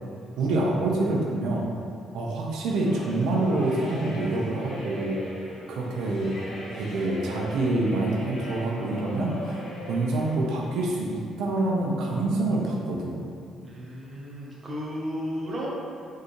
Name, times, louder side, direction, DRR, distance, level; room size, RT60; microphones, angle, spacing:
voice 1, 0.4-1.7 2.1-5.2 5.7-6.3 6.7-13.2, right 2 dB, 85° right, -3 dB, 1.1 m, -26 dB
sound 1, 2.8-10.6, equal, 60° left, 1.4 m, -40 dB
voice 2, 13.6-15.7, equal, 25° right, -6 dB, 1.2 m, -34 dB
9.0 x 4.0 x 3.3 m, 2.4 s
cardioid pair, 180°, 0 cm